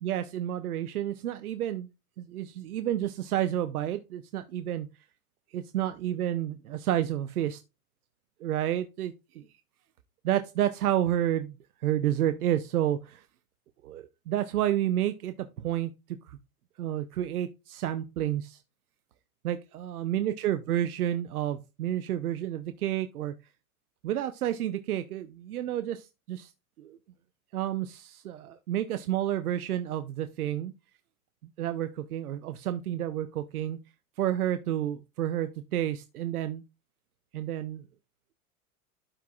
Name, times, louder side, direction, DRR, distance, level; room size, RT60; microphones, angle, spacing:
voice 1, 0.0-1.9 2.2-4.9 5.5-7.6 8.4-9.4 10.2-11.5 11.8-13.2 13.8-15.9 16.3-16.4 16.8-18.6 19.4-23.3 24.0-26.5 26.8-27.0 27.5-30.7 31.6-33.8 34.2-36.6 37.3-37.8, right 12 dB, 80° right, 0.8 m, -30 dB
12.5 x 4.7 x 2.3 m
hypercardioid pair, 100°, 43 cm